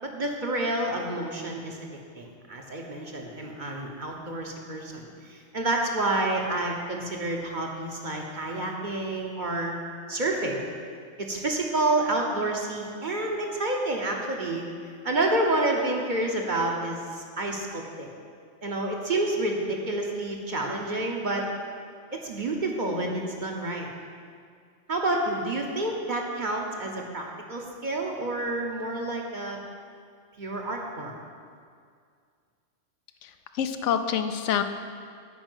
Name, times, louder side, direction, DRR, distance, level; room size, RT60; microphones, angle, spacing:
voice 1, 0.0-1.9 2.2-9.7 10.1-10.6 11.2-14.6 15.0-18.1 18.6-21.4 22.1-23.9 24.9-29.6 30.4-31.2, right 2 dB, 40° right, 0 dB, 1.1 m, -29 dB
voice 2, 33.2-34.6, left 8 dB, 75° left, 8 dB, 0.9 m, -27 dB
9.8 x 5.0 x 8.0 m, 2.1 s
omnidirectional pair, 1.3 m